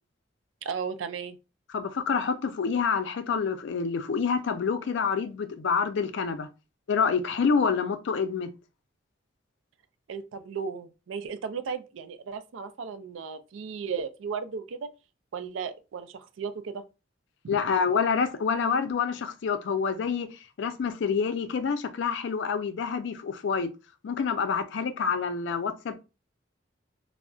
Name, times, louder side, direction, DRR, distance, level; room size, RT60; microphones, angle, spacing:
voice 1, 0.6-1.4 10.1-14.9 15.3-16.8 17.4-17.6, right 6 dB, 80° right, 0.4 m, -35 dB
voice 2, 1.7-6.5 6.9-8.5 17.5-23.7 24.0-26.0, left 5 dB, 70° left, 0.4 m, -27 dB
2.3 x 2.0 x 3.7 m
head